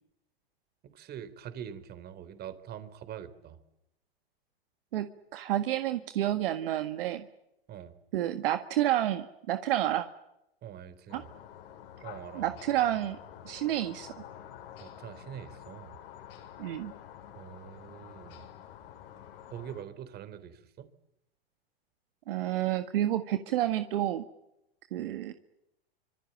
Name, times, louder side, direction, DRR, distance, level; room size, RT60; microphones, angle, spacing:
voice 1, 0.8-3.6 7.7-8.0 10.6-11.3 12.0-12.6 14.8-16.0 17.4-18.4 19.5-20.9 25.0-25.1, right 9 dB, 30° right, 13 dB, 3.5 m, -44 dB
voice 2, 5.3-7.3 8.1-10.1 11.1-11.2 12.4-13.2 13.5-14.2 16.6-16.9 22.3-24.2 24.9-25.3, right 13 dB, 65° right, 8 dB, 1.7 m, -29 dB
sound 1, 11.1-19.8, left 10 dB, 65° left, 6.1 m, -49 dB
26.0 x 24.5 x 8.9 m, 0.86 s
hypercardioid pair, 115°, 30 cm